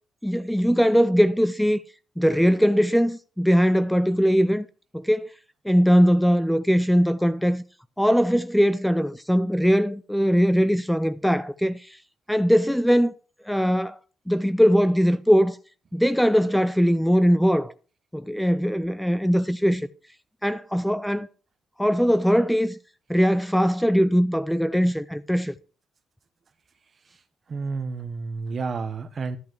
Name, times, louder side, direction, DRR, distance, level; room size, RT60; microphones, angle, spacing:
voice 1, 0.2-1.8 2.2-4.7 4.9-5.3 5.6-7.6 8.0-12.0 12.3-13.1 13.5-14.0 14.3-15.6 15.9-17.7 18.1-19.9 20.4-21.3 21.8-22.8 23.1-25.5, equal, ahead, 0.5 m, -20 dB
voice 2, 27.5-29.4, right 4 dB, 45° right, 1.3 m, -30 dB
13.0 x 5.8 x 6.2 m
cardioid pair, 90°, 0 cm